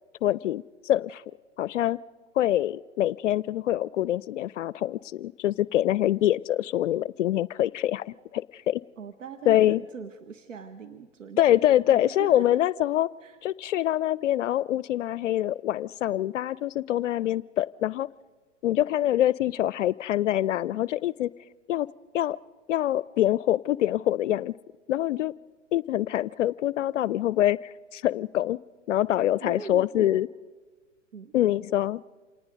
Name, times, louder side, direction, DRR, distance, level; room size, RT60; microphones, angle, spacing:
voice 1, 0.2-1.2 1.6-2.0 2.4-8.8 9.5-9.8 11.4-13.1 13.4-18.1 18.6-21.3 21.7-21.9 22.1-22.4 22.7-24.5 24.9-25.3 25.7-28.6 28.9-30.3 31.3-32.0, left 13 dB, 75° left, 20 dB, 0.5 m, -25 dB
voice 2, 9.0-12.6 13.2-13.4 29.4-30.2 31.1-31.4, right 6 dB, 85° right, 8 dB, 1.3 m, -42 dB
27.0 x 19.0 x 5.2 m, 1.4 s
hypercardioid pair, 120°, 37 cm